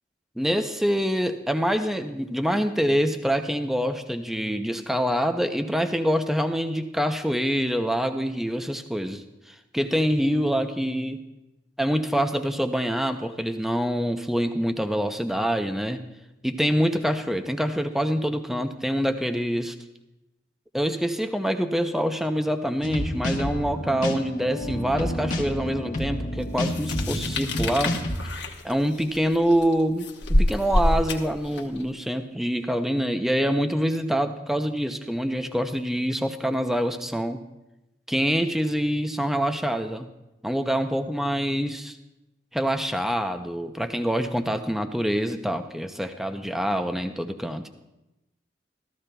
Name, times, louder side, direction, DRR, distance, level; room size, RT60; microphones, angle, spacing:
voice 1, 0.4-11.2 11.8-16.0 16.4-19.8 20.7-28.0 28.6-30.1 30.4-37.4 38.1-40.1 40.4-42.0 42.5-47.7, equal, ahead, 7 dB, 0.5 m, -25 dB
sound 1, 22.8-28.2, equal, 45° left, 1.1 m, -30 dB
sound 2, 26.7-31.8, left 1 dB, 75° left, 1.1 m, -26 dB
14.5 x 13.5 x 2.2 m, 0.96 s
head